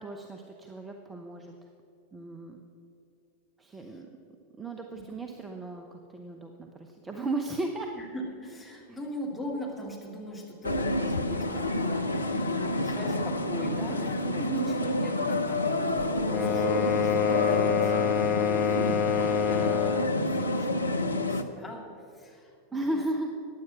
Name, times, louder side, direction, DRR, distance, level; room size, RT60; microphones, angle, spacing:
voice 1, 0.0-1.5 2.1-2.6 3.6-4.1 4.6-7.9 8.9-9.0 14.4-14.8 22.7-23.3, right 2 dB, 15° right, 4 dB, 0.9 m, -35 dB
voice 2, 8.0-23.0, left 1 dB, 10° left, -2 dB, 2.9 m, -41 dB
sound 1, 10.6-21.4, left 1 dB, 80° left, 0.7 m, -29 dB
sound 2, 16.3-20.2, left 8 dB, 30° left, 1.1 m, -26 dB
15.0 x 10.0 x 6.0 m, 2.8 s
figure-of-eight pair, 90°, 0 cm